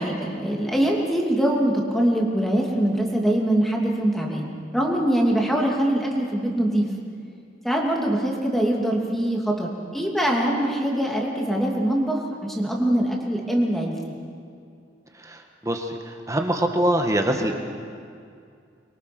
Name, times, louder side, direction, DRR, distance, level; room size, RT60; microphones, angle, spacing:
voice 1, 0.0-6.9 7.6-14.1, right 1 dB, ahead, -1 dB, 2.8 m, -23 dB
voice 2, 15.2-17.5, right 1 dB, 15° right, 4 dB, 1.6 m, -24 dB
24.5 x 23.0 x 6.2 m, 2.3 s
head